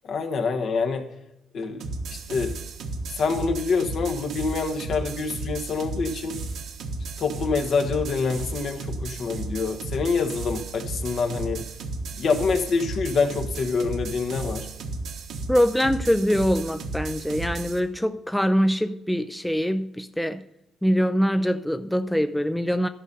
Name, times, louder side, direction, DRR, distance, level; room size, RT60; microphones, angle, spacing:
voice 1, 0.0-1.0 1.5-1.8 2.1-2.6 3.2-6.4 7.2-11.6 12.2-14.7, left 4 dB, 65° left, 1.3 m, -26 dB
sound 1, 1.8-17.8, right 3 dB, 75° right, 1.3 m, -34 dB
voice 2, 15.5-20.4 20.8-22.9, equal, 5° left, 0.5 m, -23 dB
12.5 x 5.5 x 6.7 m
cardioid pair, 90°, 0 cm